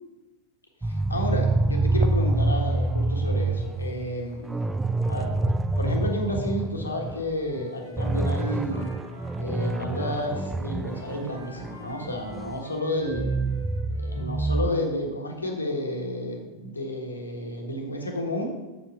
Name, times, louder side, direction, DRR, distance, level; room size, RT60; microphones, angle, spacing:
sound 1, 0.8-7.3 7.6-7.7 8.0-12.6 13.1-14.7, right 2 dB, 10° right, 0.4 m, -26 dB
voice 1, 0.9-4.5 5.1-5.3 5.8-8.9 9.4-13.3 14.0-18.5, left 1 dB, 80° left, 1 dB, 1.5 m, -31 dB
Wind instrument woodwind instrument, 7.4-10.6 10.9-14.3, right 2 dB, 75° right, 2.6 m, -46 dB
7.2 x 7.1 x 4.7 m, 1.1 s
figure-of-eight pair, 90°, 0 cm